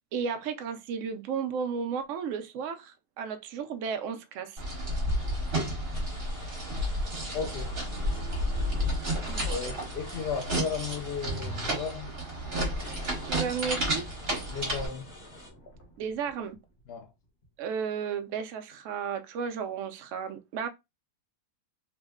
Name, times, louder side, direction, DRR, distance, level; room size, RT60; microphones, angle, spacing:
voice 1, 0.1-4.6 9.3-9.6 13.2-14.1 16.0-16.6 17.6-20.7, right 6 dB, 65° right, 0.8 m, -33 dB
sound 1, 4.6-14.9, equal, 40° right, 1.3 m, -31 dB
sound 2, 5.9-12.0 12.4-12.5 12.8-15.5, left 2 dB, 25° left, 1.0 m, -51 dB
voice 2, 7.3-7.7 9.5-12.1 14.5-15.1 16.9-17.1, left 6 dB, 70° left, 0.5 m, -35 dB
sound 3, 11.2-17.0 17.4-17.5, right 1 dB, 50° left, 1.2 m, -45 dB
2.9 x 2.1 x 3.5 m
omnidirectional pair, 1.6 m